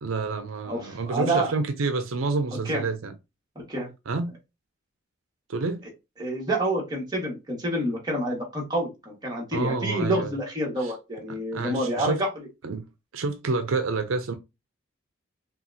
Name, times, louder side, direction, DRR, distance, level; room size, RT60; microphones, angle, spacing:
voice 1, 0.0-3.1 4.1-4.4 5.5-5.8 9.5-10.3 10.8-10.9 11.3-12.2 12.6-12.8 13.1-14.3, right 3 dB, 85° right, 0.5 m, -28 dB
voice 2, 0.7-1.5 2.6-2.8 3.5-3.9 6.2-12.3, right 1 dB, 20° right, 1.7 m, -28 dB
5.6 x 2.4 x 2.7 m
head